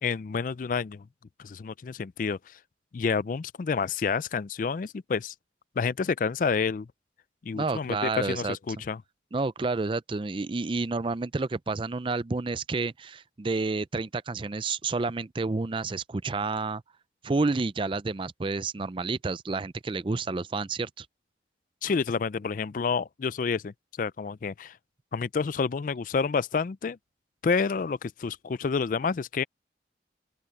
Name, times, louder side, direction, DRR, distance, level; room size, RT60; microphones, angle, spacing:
voice 1, 0.0-1.0 1.4-2.4 2.9-5.3 5.8-6.9 7.4-9.0 21.8-24.8 25.1-27.0 27.4-29.4, left 5 dB, 45° left, 0.4 m, -29 dB
voice 2, 7.5-8.6 9.3-16.8 17.2-21.1, right 3 dB, 30° right, 0.4 m, -30 dB
open air
head